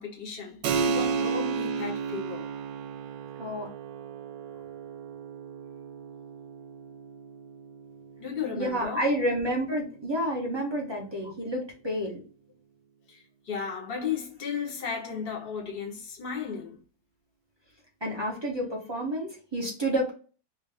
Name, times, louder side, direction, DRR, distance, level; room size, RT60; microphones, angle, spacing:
voice 1, 0.0-2.5 8.2-9.1 11.2-11.3 13.1-16.8, left 6 dB, 40° left, 1.0 m, -35 dB
Keyboard (musical), 0.6-10.8, right 5 dB, 90° right, 1.3 m, -34 dB
voice 2, 8.5-12.2 18.0-20.1, equal, 35° right, 0.4 m, -29 dB
3.3 x 2.6 x 3.3 m
omnidirectional pair, 2.0 m